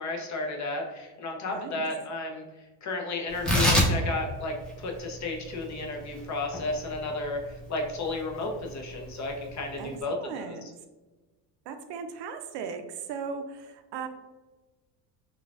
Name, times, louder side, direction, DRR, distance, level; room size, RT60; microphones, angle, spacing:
voice 1, 0.0-2.4 2.8-7.4 7.7-10.6, left 2 dB, 35° left, 2 dB, 0.7 m, -33 dB
voice 2, 1.4-1.8 9.8-10.7 11.7-14.1, right 6 dB, 60° right, 8 dB, 0.5 m, -38 dB
Tearing, 3.3-10.0, equal, ahead, 0.7 m, -30 dB
3.8 x 2.4 x 2.4 m, 1.2 s
supercardioid pair, 85°, 49 cm